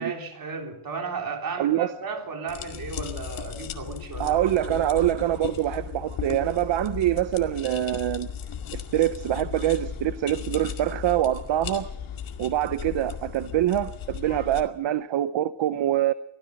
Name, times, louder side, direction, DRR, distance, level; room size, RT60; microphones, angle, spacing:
voice 1, 0.0-4.4 4.7-4.9, right 5 dB, 45° right, 3.7 m, -34 dB
voice 2, 1.6-1.9 4.2-8.3 8.7-11.9 12.4-16.1, right 12 dB, 65° right, 0.8 m, -25 dB
sound 1, 2.5-14.6, left 8 dB, 75° left, 2.3 m, -36 dB
24.0 x 16.5 x 6.6 m
wide cardioid pair, 165°, 48 cm